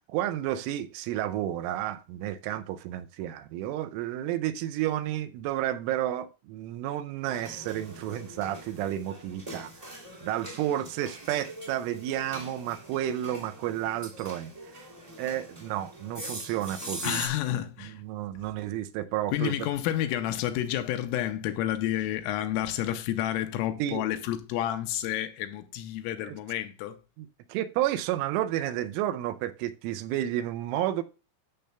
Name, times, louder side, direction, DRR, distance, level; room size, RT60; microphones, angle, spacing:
voice 1, 0.1-9.7 10.2-14.9 15.2-17.2 17.5-19.6 23.8-24.0 26.2-26.4 27.2-31.0, right 12 dB, 85° right, 3.0 m, -31 dB
sound 1, 7.2-17.3, right 1 dB, 45° right, 0.4 m, -42 dB
voice 2, 17.0-18.0 19.3-27.0, left 12 dB, 90° left, 3.3 m, -30 dB
13.5 x 6.7 x 2.2 m
omnidirectional pair, 5.9 m